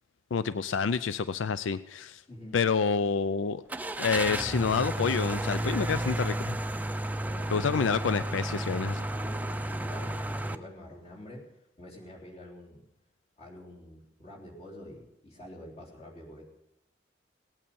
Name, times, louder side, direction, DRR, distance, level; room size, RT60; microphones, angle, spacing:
voice 1, 0.3-2.2 2.5-3.6 4.0-6.6 7.5-9.0, left 5 dB, 90° left, 14 dB, 0.4 m, -28 dB
Car / Engine starting, 3.7-10.6, right 1 dB, 10° right, 0.5 m, -32 dB
voice 2, 7.1-7.7 9.1-11.5 11.8-12.8 13.4-16.4, left 1 dB, 35° left, -2 dB, 3.4 m, -46 dB
18.0 x 8.7 x 7.0 m, 0.85 s
head